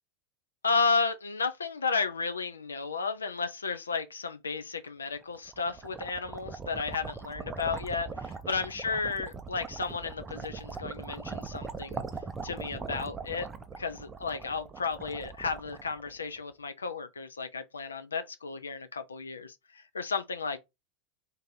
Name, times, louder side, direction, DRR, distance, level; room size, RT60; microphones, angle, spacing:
voice 1, 0.6-12.0 12.4-13.5 13.8-20.6, left 4 dB, 75° left, 0.3 m, -33 dB
sound 1, 5.2-16.4, right 4 dB, 20° right, 0.4 m, -41 dB
2.6 x 2.6 x 3.6 m
figure-of-eight pair, 85°, 0 cm